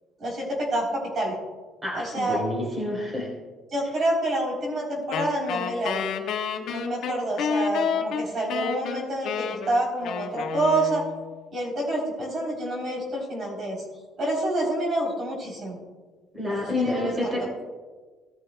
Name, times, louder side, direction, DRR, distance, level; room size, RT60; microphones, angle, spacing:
voice 1, 0.2-1.4 1.9-2.4 3.7-6.1 6.7-11.1 11.5-13.8 14.2-15.8 16.5-17.3, right 1 dB, 40° right, -2 dB, 3.6 m, -28 dB
voice 2, 1.8-3.3 16.3-17.6, left 1 dB, 15° right, -2 dB, 3.7 m, -28 dB
Wind instrument woodwind instrument, 5.1-11.4, left 7 dB, 65° left, 1.2 m, -30 dB
18.0 x 10.5 x 2.3 m, 1.4 s
cardioid pair, 140°, 0 cm